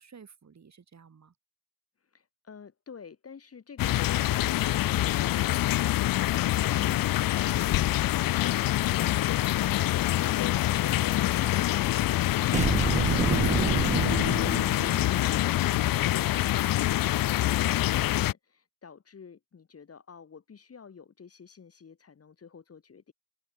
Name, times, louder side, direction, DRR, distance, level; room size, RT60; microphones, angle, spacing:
voice 1, 0.0-1.3 6.7-7.1 12.6-13.2 13.5-15.3 15.7-16.2, right 6 dB, 50° right, 3.8 m, -50 dB
voice 2, 2.1-13.0 13.9-15.4 15.9-23.1, left 6 dB, 40° left, 1.4 m, -49 dB
sound 1, 3.8-18.3, left 15 dB, 65° left, 0.5 m, -25 dB
sound 2, 9.6-16.1, left 1 dB, 5° left, 3.8 m, -50 dB
sound 3, 12.5-15.3, right 5 dB, 20° right, 0.4 m, -28 dB
cardioid pair, 70°, 36 cm